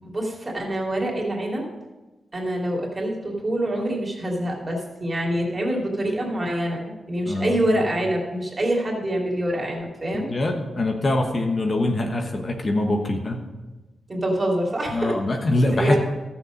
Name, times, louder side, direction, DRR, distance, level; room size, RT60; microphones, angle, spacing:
voice 1, 0.0-1.6 2.3-10.3 14.1-15.2 15.7-16.0, right 1 dB, 30° right, -2 dB, 2.9 m, -25 dB
voice 2, 7.3-7.8 10.1-13.4 14.9-16.0, left 2 dB, 40° left, 3 dB, 1.2 m, -24 dB
13.0 x 7.1 x 5.2 m, 1.1 s
cardioid pair, 85°, 0 cm